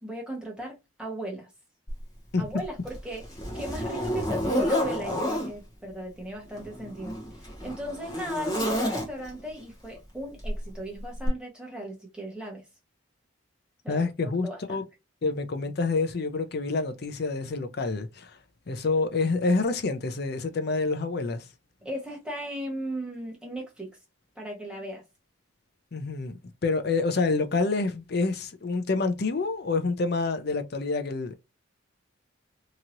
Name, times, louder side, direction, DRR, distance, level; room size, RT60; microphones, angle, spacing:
voice 1, 0.0-1.5 2.4-3.2 3.5-12.6 13.8-14.8 21.8-24.0 24.4-25.0, right 1 dB, 5° right, 1.1 m, -37 dB
Zipper (clothing), 1.9-2.0 2.6-5.5 6.5-9.4 10.4-10.6 11.2-11.3, equal, 20° left, 0.9 m, -30 dB
voice 2, 13.9-14.8 15.2-18.4 18.7-21.5 25.9-31.3, left 3 dB, 50° left, 0.5 m, -27 dB
2.9 x 2.8 x 2.5 m
head